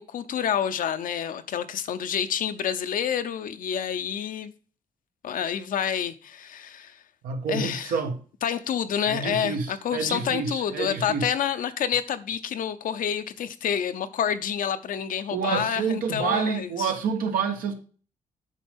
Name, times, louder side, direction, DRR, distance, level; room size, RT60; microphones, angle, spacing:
voice 1, 0.0-4.5 5.2-7.0 7.5-7.9 8.4-16.9, left 8 dB, 75° left, 0.7 m, -28 dB
voice 2, 7.2-8.2 9.1-11.3 15.3-17.7, right 5 dB, 85° right, 1.5 m, -28 dB
8.3 x 5.5 x 3.6 m
cardioid pair, 95°, 14 cm